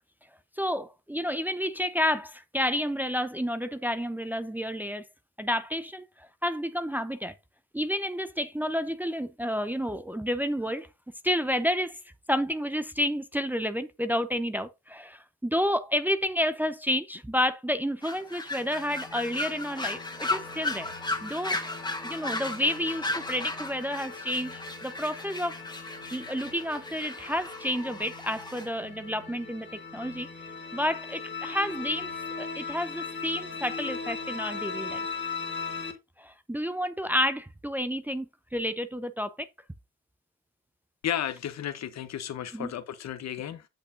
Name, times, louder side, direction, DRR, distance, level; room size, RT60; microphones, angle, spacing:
voice 1, 0.6-5.1 5.4-7.3 7.7-10.9 11.2-12.0 12.3-20.9 21.2-25.6 26.1-30.3 30.7-32.1 32.4-35.1 36.2-39.5 42.5-42.7, equal, 5° right, 0.6 m, -30 dB
sound 1, 18.0-28.7, left 2 dB, 15° left, 1.5 m, -36 dB
sound 2, 18.5-35.9, left 5 dB, 35° left, 1.6 m, -40 dB
voice 2, 41.0-43.7, left 10 dB, 60° left, 0.9 m, -33 dB
8.0 x 6.6 x 2.6 m
cardioid pair, 90°, 30 cm